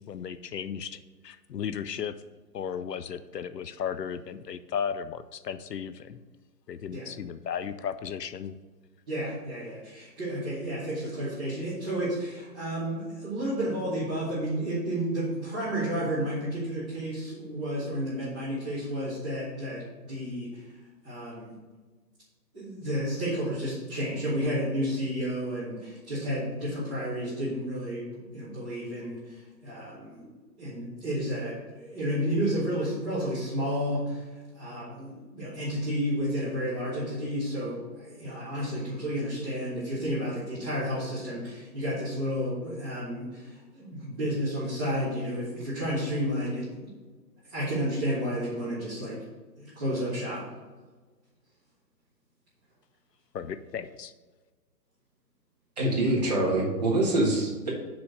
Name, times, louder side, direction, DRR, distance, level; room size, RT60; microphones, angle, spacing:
voice 1, 0.1-2.1 2.5-6.2 6.7-8.5 53.3-54.1, left 7 dB, 75° left, 13 dB, 0.6 m, -35 dB
voice 2, 9.1-20.8 21.0-21.5 22.5-30.3 30.6-46.7 47.5-49.2 49.6-50.4, equal, 5° right, -18 dB, 0.9 m, -31 dB
voice 3, 55.8-57.7, right 1 dB, 25° right, -3 dB, 1.4 m, -25 dB
6.2 x 5.0 x 6.3 m, 1.3 s
hypercardioid pair, 170°, 50 cm